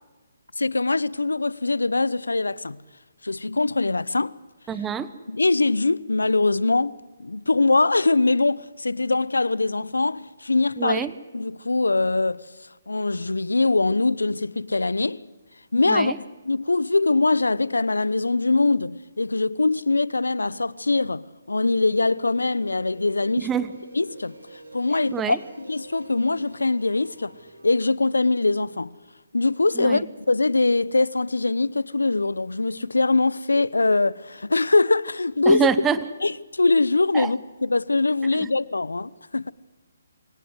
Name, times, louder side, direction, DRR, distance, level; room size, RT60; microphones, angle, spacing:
voice 1, 0.6-2.8 3.2-4.3 5.3-11.1 11.3-12.5 12.9-15.2 15.7-23.5 23.9-24.3 24.7-27.3 27.6-28.9 29.3-35.7 36.2-39.5, left 3 dB, 90° left, 0.8 m, -22 dB
voice 2, 4.7-5.1 10.8-11.1 15.9-16.2 23.4-23.7 25.1-25.4 29.7-30.0 35.5-36.0 37.1-37.3 38.4-38.5, right 7 dB, 10° right, 1.0 m, -25 dB
sound 1, 21.7-27.7, right 2 dB, 80° right, 6.9 m, -48 dB
25.0 x 18.0 x 8.0 m
figure-of-eight pair, 145°, 0 cm